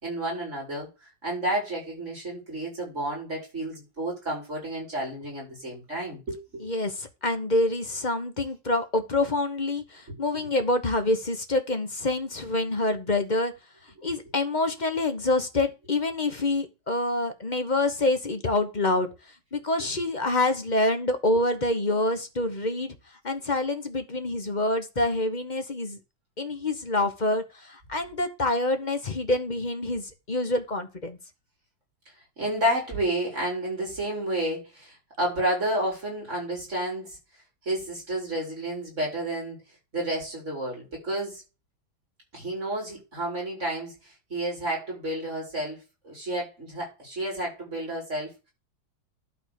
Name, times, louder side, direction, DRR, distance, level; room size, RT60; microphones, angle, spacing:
voice 1, 0.0-6.7 10.1-10.2 21.3-21.4 32.4-37.2 37.6-39.6 39.9-41.4 42.3-43.9 44.3-45.8 46.0-48.5, right 1 dB, 40° right, 5.5 m, -31 dB
voice 2, 6.6-13.5 14.0-19.1 19.5-22.9 23.2-26.0 26.4-31.2, left 2 dB, 30° left, 1.0 m, -26 dB
11.5 x 4.3 x 6.6 m
omnidirectional pair, 2.0 m